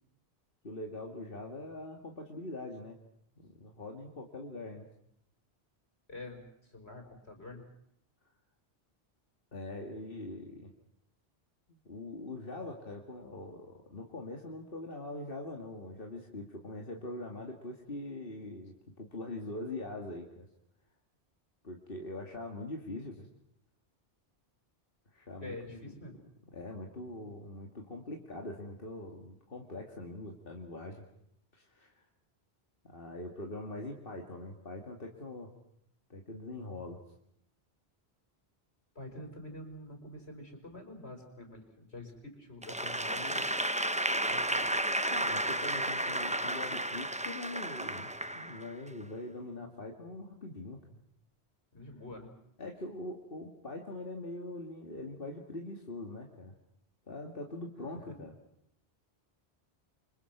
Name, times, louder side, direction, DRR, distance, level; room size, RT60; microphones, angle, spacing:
voice 1, 0.6-3.0 3.4-4.9 9.5-10.7 11.7-20.5 21.6-23.3 25.1-25.9 26.5-31.0 31.5-32.0 32.8-35.5 36.1-37.0 45.1-50.8 52.6-56.5 57.1-58.3, left 2 dB, 60° left, 1 dB, 2.5 m, -43 dB
voice 2, 6.1-7.7 25.4-26.2 39.0-43.4 44.3-44.7 51.7-52.3 58.0-58.2, left 2 dB, 80° left, 4 dB, 5.6 m, -46 dB
Applause / Crowd, 42.6-48.9, right 1 dB, 5° right, 0.9 m, -32 dB
29.0 x 25.5 x 6.1 m, 0.74 s
omnidirectional pair, 1.1 m